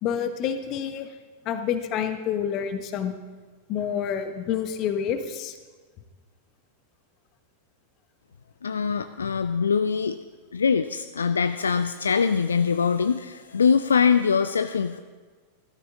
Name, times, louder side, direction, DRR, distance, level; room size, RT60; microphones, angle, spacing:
voice 1, 0.0-1.1 1.4-3.2 3.7-5.6, left 8 dB, 40° left, 9 dB, 1.1 m, -28 dB
voice 2, 8.6-10.2 10.5-15.0, left 6 dB, 70° left, 10 dB, 0.4 m, -23 dB
15.5 x 13.0 x 3.6 m, 1.4 s
figure-of-eight pair, 90°, 0 cm